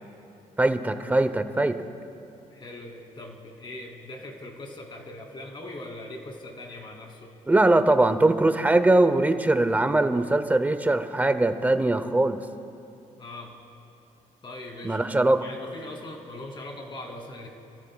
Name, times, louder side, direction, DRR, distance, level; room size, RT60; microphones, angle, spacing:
voice 1, 0.6-1.8 7.5-12.4 14.8-15.4, right 2 dB, 10° right, 9 dB, 0.7 m, -21 dB
voice 2, 2.5-7.4 13.2-13.6 14.4-15.0 15.4-17.5, left 1 dB, 35° left, 0 dB, 2.6 m, -40 dB
29.0 x 14.0 x 2.3 m, 2.7 s
cardioid pair, 115°, 14 cm